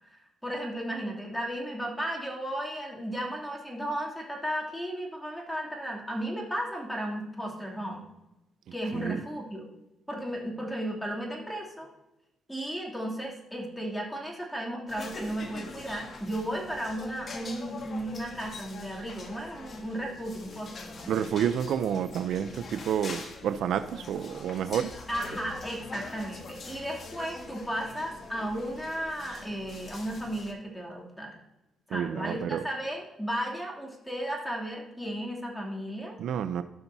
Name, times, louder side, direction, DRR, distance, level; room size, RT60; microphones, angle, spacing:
voice 1, 0.0-8.0 8.7-9.6 10.1-11.9 12.5-21.1 25.1-31.3 31.9-36.2, equal, 5° left, -2 dB, 2.7 m, -34 dB
sound 1, 14.9-30.5, left 3 dB, 45° left, 1.4 m, -44 dB
voice 2, 21.1-24.9 31.9-32.6 36.2-36.6, right 9 dB, 75° right, 11 dB, 0.5 m, -29 dB
15.5 x 5.9 x 2.7 m, 0.95 s
cardioid pair, 90°, 0 cm